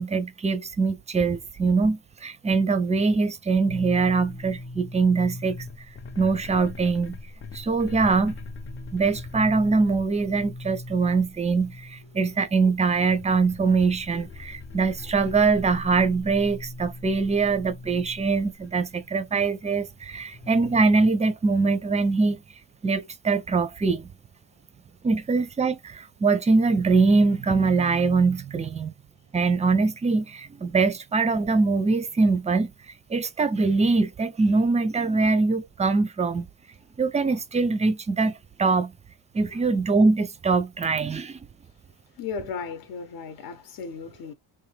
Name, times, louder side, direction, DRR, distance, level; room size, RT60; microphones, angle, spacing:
voice 1, 0.0-5.6 6.2-7.2 7.5-8.4 8.9-22.4 22.8-24.1 25.0-28.9 29.3-32.7 33.1-36.5 37.0-38.9 39.3-41.4, right 4 dB, 15° right, 0.5 m, -23 dB
sound 1, 3.7-18.4 18.8-21.1, left 2 dB, 30° left, 0.6 m, -40 dB
voice 2, 42.2-44.3, left 5 dB, 55° left, 0.9 m, -35 dB
3.4 x 2.6 x 3.3 m
cardioid pair, 145°, 42 cm